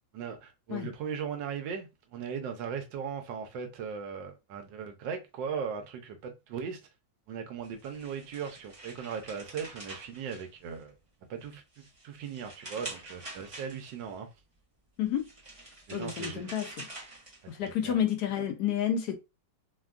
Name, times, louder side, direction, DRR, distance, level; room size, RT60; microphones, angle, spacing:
voice 1, 0.1-6.8 7.3-10.9 11.3-14.3 15.9-16.4 17.6-18.0, right 7 dB, 75° right, 1.3 m, -38 dB
sound 1, 7.6-11.0 11.4-14.1 15.0-17.7, right 2 dB, 30° right, 0.6 m, -46 dB
voice 2, 15.9-16.9 17.5-19.1, left 9 dB, 70° left, 1.0 m, -30 dB
3.4 x 2.2 x 2.4 m
omnidirectional pair, 2.1 m